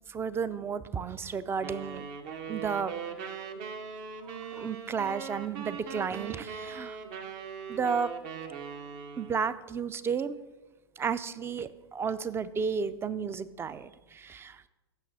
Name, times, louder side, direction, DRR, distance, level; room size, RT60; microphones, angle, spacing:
voice 1, 0.1-2.1 2.5-3.0 4.2-7.0 7.7-8.1 9.2-10.4 11.0-14.7, right 6 dB, 15° right, 16 dB, 0.4 m, -33 dB
sound 1, 1.6-9.5, right 6 dB, 50° right, 1.0 m, -40 dB
15.5 x 5.9 x 4.1 m, 1.1 s
hypercardioid pair, 105°, 14 cm